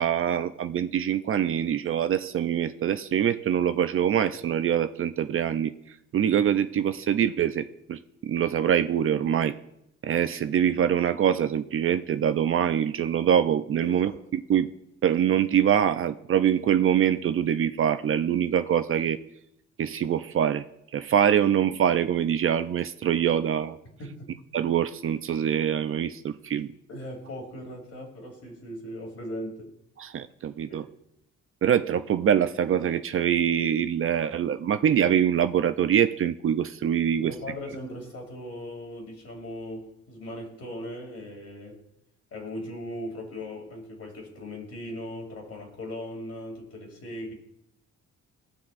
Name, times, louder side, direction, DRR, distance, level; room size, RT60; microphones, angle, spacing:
voice 1, 0.0-5.7 6.1-9.6 10.0-14.7 15.0-19.2 19.8-20.6 20.9-23.8 24.5-26.7 30.0-30.8 31.6-37.3, right 9 dB, 45° right, 11 dB, 0.4 m, -24 dB
voice 2, 13.8-14.2 24.0-24.3 26.9-29.7 30.7-30.9 37.2-41.8 42.3-47.3, left 1 dB, 55° left, 1 dB, 2.7 m, -38 dB
17.5 x 5.9 x 2.5 m, 0.80 s
cardioid pair, 90°, 30 cm